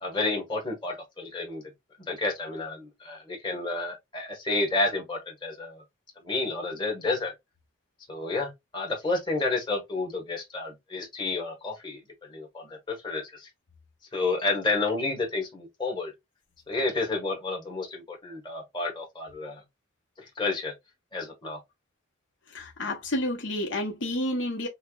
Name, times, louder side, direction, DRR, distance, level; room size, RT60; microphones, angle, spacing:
voice 1, 0.0-1.6 2.0-5.8 6.2-7.3 8.1-13.5 14.1-16.1 16.7-19.6 20.2-20.7 21.1-21.6, left 3 dB, 25° left, 1.3 m, -30 dB
voice 2, 22.5-24.7, left 1 dB, 65° left, 0.8 m, -30 dB
5.5 x 2.1 x 2.3 m
head